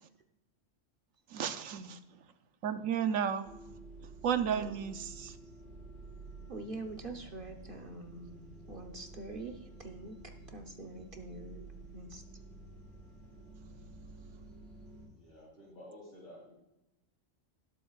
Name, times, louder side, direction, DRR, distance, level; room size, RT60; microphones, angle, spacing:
voice 1, 1.3-2.0 2.6-3.5 4.2-5.3, right 8 dB, 85° right, 9 dB, 1.2 m, -33 dB
sound 1, 3.4-15.1, right 2 dB, 65° right, 4.6 m, -51 dB
voice 2, 4.5-4.9 6.5-8.4 8.7-12.2, right 2 dB, 45° right, 4 dB, 1.0 m, -45 dB
voice 3, 15.1-16.6, left 1 dB, 60° left, -2 dB, 3.9 m, -52 dB
18.5 x 8.0 x 2.4 m, 0.95 s
omnidirectional pair, 1.3 m